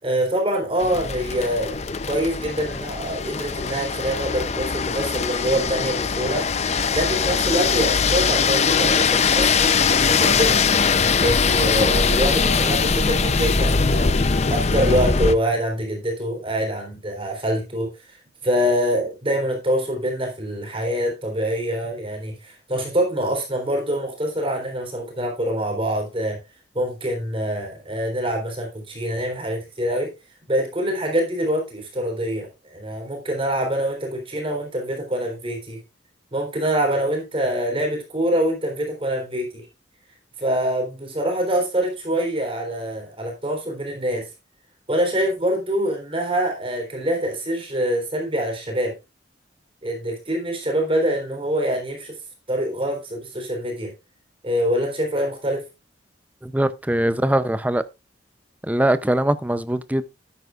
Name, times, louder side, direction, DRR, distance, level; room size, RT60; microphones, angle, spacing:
voice 1, 0.0-6.4 6.9-10.6 11.2-14.2 14.5-17.9 18.4-26.4 26.7-30.1 30.5-35.8 36.3-39.7 40.4-44.3 44.9-49.0 49.8-52.2 52.5-53.9 54.4-55.6, equal, 30° right, 3.7 m, -25 dB
sound 1, 0.8-15.4, left 5 dB, 35° left, 0.6 m, -21 dB
voice 2, 56.4-57.8 58.6-60.1, right 1 dB, 10° right, 0.6 m, -21 dB
12.5 x 9.5 x 2.4 m
head